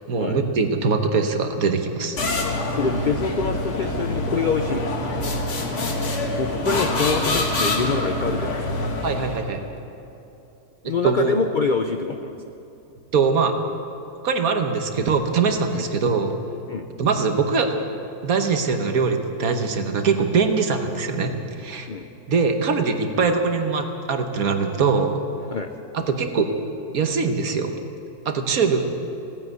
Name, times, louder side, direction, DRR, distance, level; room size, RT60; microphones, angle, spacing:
voice 1, 0.1-2.2 9.0-9.6 10.8-11.3 13.1-13.6 14.2-16.4 17.0-17.8 18.2-21.9 22.3-25.2 25.9-26.5 26.9-27.7 28.2-28.8, right 5 dB, 65° right, 6 dB, 1.5 m, -22 dB
sound 1, 2.2-9.6, left 2 dB, 50° left, 1.6 m, -25 dB
voice 2, 2.7-4.9 6.4-8.6 10.8-12.4 15.7-15.9 16.7-16.9 21.9-22.1 25.5-25.7, left 4 dB, 75° left, 6 dB, 0.4 m, -25 dB
17.0 x 9.8 x 8.1 m, 2.8 s
omnidirectional pair, 1.7 m